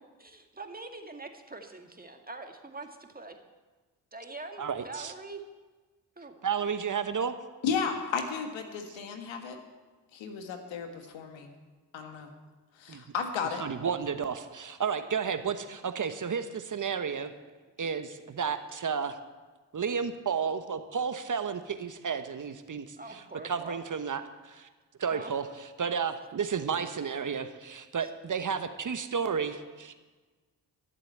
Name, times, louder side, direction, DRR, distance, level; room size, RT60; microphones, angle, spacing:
voice 1, 0.2-3.4 4.1-5.4 6.2-6.4 23.0-23.8 25.1-25.3 28.0-28.1, right 3 dB, 20° right, 4 dB, 2.0 m, -44 dB
voice 2, 4.6-5.1 6.4-7.4 12.9-13.0 13.6-17.3 17.8-19.2 19.7-24.7 25.0-25.5 25.8-29.9, right 6 dB, 40° right, 9 dB, 1.1 m, -32 dB
voice 3, 7.6-9.6 10.1-11.5 11.9-12.3 12.8-13.6, left 6 dB, 75° left, 5 dB, 1.8 m, -33 dB
13.0 x 7.7 x 8.6 m, 1.3 s
hypercardioid pair, 45°, 46 cm